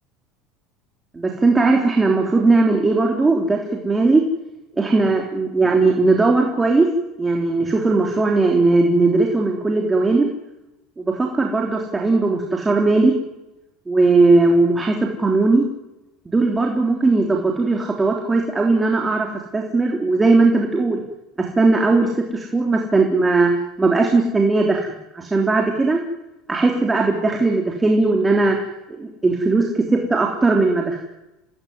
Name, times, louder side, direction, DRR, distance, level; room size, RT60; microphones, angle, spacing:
voice 1, 1.1-4.3 4.8-6.9 7.2-10.3 11.0-13.1 13.9-15.7 16.3-21.0 21.4-23.5 23.8-24.9 25.1-26.0 26.5-28.6 29.0-31.1, right 3 dB, 15° right, 1 dB, 3.6 m, -18 dB
28.5 x 19.5 x 9.7 m, 0.99 s
supercardioid pair, 120°, 0 cm